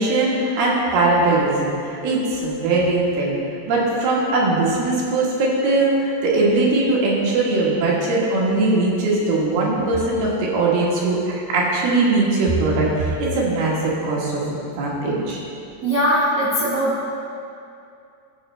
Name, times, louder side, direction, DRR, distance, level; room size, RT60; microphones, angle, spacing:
voice 1, 0.0-3.4 3.7-14.4 14.8-15.4, right 2 dB, 70° right, -5 dB, 3.3 m, -20 dB
voice 2, 15.8-17.1, equal, 90° right, -10 dB, 0.7 m, -20 dB
15.0 x 6.5 x 3.2 m, 2.5 s
omnidirectional pair, 4.8 m